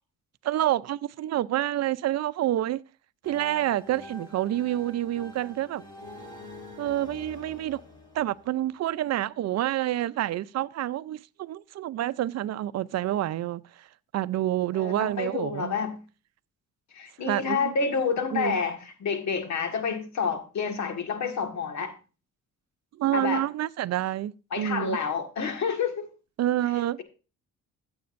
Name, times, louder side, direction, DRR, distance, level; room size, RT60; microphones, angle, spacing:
voice 1, 0.4-2.8 3.2-5.8 6.8-7.8 8.1-13.9 14.1-15.8 17.2-17.7 18.3-18.6 23.0-25.0 26.4-27.0, right 13 dB, 60° right, 0.6 m, -28 dB
sound 1, 3.2-9.0, left 2 dB, 15° left, 3.0 m, -46 dB
voice 2, 14.7-16.0 16.9-21.9 23.1-23.4 24.5-26.1, left 5 dB, 65° left, 1.9 m, -29 dB
14.5 x 7.9 x 2.6 m
cardioid pair, 90°, 30 cm